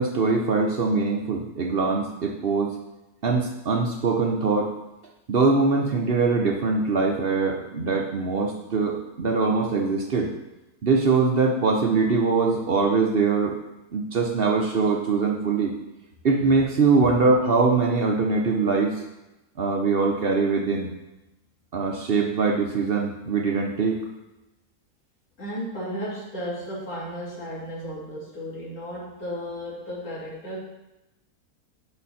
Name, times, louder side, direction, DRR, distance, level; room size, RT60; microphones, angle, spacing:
voice 1, 0.0-2.7 3.2-4.7 5.3-10.3 10.8-13.6 13.9-15.7 16.2-18.9 19.6-20.9 21.7-24.0, right 4 dB, 50° right, 1 dB, 0.8 m, -22 dB
voice 2, 25.4-30.6, equal, 70° left, -8 dB, 3.5 m, -34 dB
8.8 x 5.1 x 4.2 m, 0.97 s
omnidirectional pair, 1.6 m